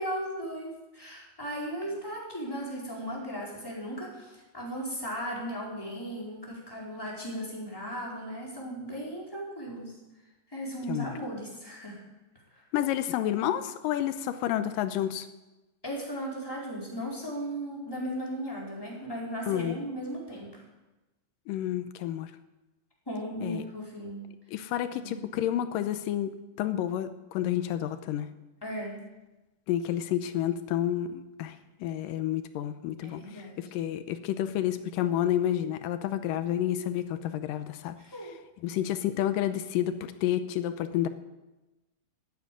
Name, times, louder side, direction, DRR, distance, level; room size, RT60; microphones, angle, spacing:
voice 1, 0.0-9.9 10.5-12.0 12.5-12.6 15.8-20.6 23.1-24.2 25.0-25.2 28.6-29.0 33.0-33.7 38.0-38.3, equal, 5° left, -4 dB, 4.3 m, -36 dB
voice 2, 12.7-15.3 19.5-19.8 21.5-22.3 23.4-23.6 24.5-28.3 29.7-31.6 31.8-38.0 38.6-41.1, left 11 dB, 90° left, 10 dB, 2.4 m, -30 dB
14.5 x 9.6 x 9.3 m, 1.1 s
omnidirectional pair, 3.9 m